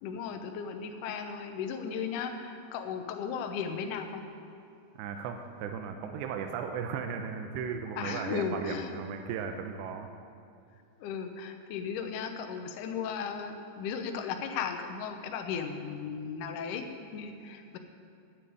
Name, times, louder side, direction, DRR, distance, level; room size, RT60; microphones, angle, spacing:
voice 1, 0.0-4.2 7.9-8.9 11.0-16.9 17.1-17.8, left 6 dB, 85° left, 5 dB, 1.8 m, -36 dB
voice 2, 5.0-10.1, right 6 dB, 80° right, 5 dB, 2.9 m, -36 dB
10.0 x 9.9 x 8.6 m, 2.5 s
omnidirectional pair, 5.0 m